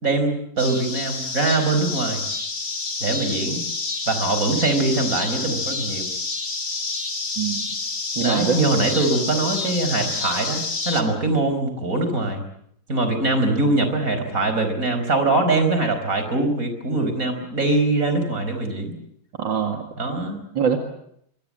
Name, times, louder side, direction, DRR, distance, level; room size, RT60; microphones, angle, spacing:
voice 1, 0.0-2.2 3.0-3.6 4.1-6.1 8.2-12.4 12.9-18.9 20.0-20.4, right 2 dB, 45° right, 7 dB, 5.4 m, -22 dB
sound 1, 0.6-11.0, left 3 dB, 50° left, 3.2 m, -28 dB
voice 2, 7.4-7.7 8.2-8.6 19.4-19.8 20.6-20.8, right 7 dB, 80° right, 4 dB, 2.9 m, -23 dB
26.5 x 24.0 x 7.6 m, 0.71 s
omnidirectional pair, 2.0 m